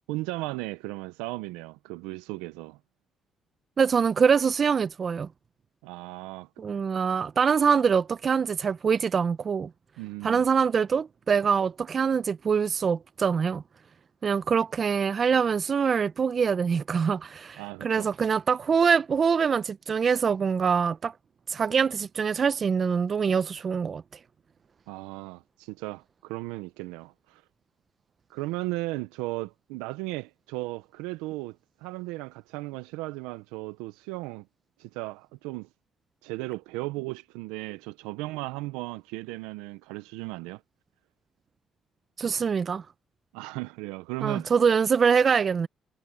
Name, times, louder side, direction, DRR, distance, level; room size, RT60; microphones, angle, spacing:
voice 1, 0.1-2.8 5.8-6.5 10.0-10.5 17.6-18.1 24.9-27.4 28.3-34.5 34.8-35.7 36.2-40.6 43.3-44.5, right 21 dB, 85° right, 0.9 m, -36 dB
voice 2, 3.8-5.3 6.6-9.7 10.2-13.6 14.2-21.1 21.5-24.0 42.2-42.8 44.2-45.7, right 6 dB, 50° right, 0.9 m, -24 dB
hypercardioid pair, 50°, 0 cm